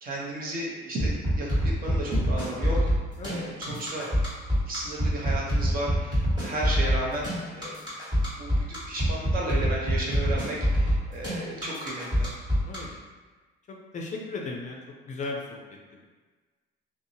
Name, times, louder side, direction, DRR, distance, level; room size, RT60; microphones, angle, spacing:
voice 1, 0.0-2.9 3.3-4.1 4.7-7.3 7.5-7.8 8.4-12.3, right 1 dB, 45° right, -3 dB, 0.7 m, -33 dB
sound 1, 1.0-12.8, equal, 20° right, 1.5 m, -25 dB
voice 2, 3.2-3.5 12.7-13.0 13.7-14.8 15.1-16.0, left 3 dB, 35° left, 0 dB, 0.4 m, -36 dB
2.6 x 2.0 x 2.6 m, 1.3 s
cardioid pair, 115°, 20 cm